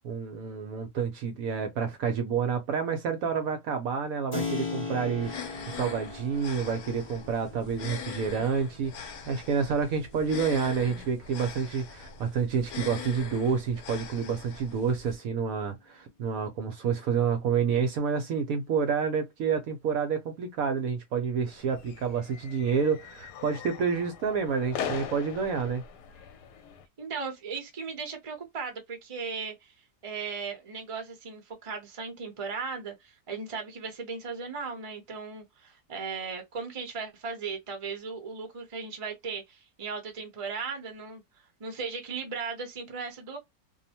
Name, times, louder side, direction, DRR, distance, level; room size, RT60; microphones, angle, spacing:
voice 1, 0.0-25.8, right 6 dB, 70° right, 0.9 m, -29 dB
Keyboard (musical), 4.3-12.9, left 4 dB, 40° left, 0.7 m, -40 dB
sound 1, 5.2-15.1, left 6 dB, 70° left, 1.1 m, -42 dB
sound 2, 21.5-26.8, left 8 dB, 85° left, 1.2 m, -40 dB
voice 2, 27.0-29.7 30.0-41.2 41.6-43.4, right 5 dB, 30° right, 0.6 m, -37 dB
2.7 x 2.0 x 2.8 m
omnidirectional pair, 1.8 m